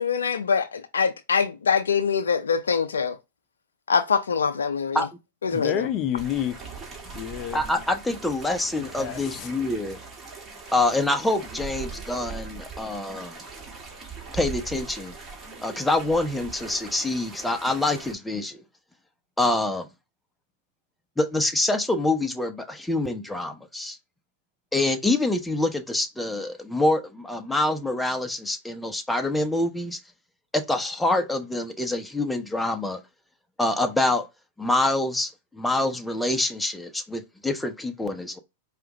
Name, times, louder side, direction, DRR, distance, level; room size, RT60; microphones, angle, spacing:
voice 1, 0.0-3.2 3.9-5.0 5.4-5.9, left 6 dB, 85° left, 0.5 m, -24 dB
voice 2, 5.5-7.6 8.8-9.5, left 10 dB, 40° left, 0.7 m, -30 dB
sound 1, 6.2-18.1, right 5 dB, 25° right, 1.7 m, -40 dB
voice 3, 7.5-10.0 10.7-13.4 14.3-15.2 15.6-18.6 19.4-19.9 21.2-24.0 24.7-30.0 30.5-33.0 33.6-34.3 34.6-38.4, left 2 dB, 5° left, 0.8 m, -26 dB
4.8 x 2.5 x 3.0 m
hypercardioid pair, 100°, 0 cm